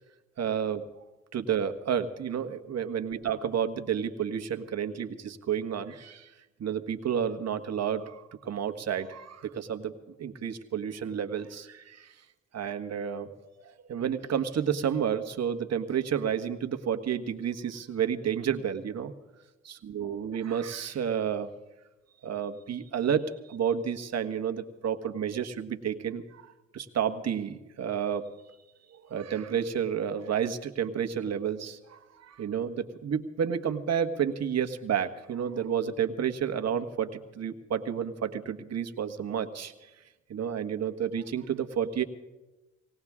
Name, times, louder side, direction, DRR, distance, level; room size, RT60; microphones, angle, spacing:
voice 1, 0.4-0.8 1.3-6.3 6.6-12.1 12.5-19.1 19.8-21.5 22.2-28.3 28.9-39.7 40.3-42.0, right 8 dB, 60° right, 7 dB, 1.4 m, -31 dB
19.5 x 17.5 x 3.6 m, 1.0 s
supercardioid pair, 60°, 29 cm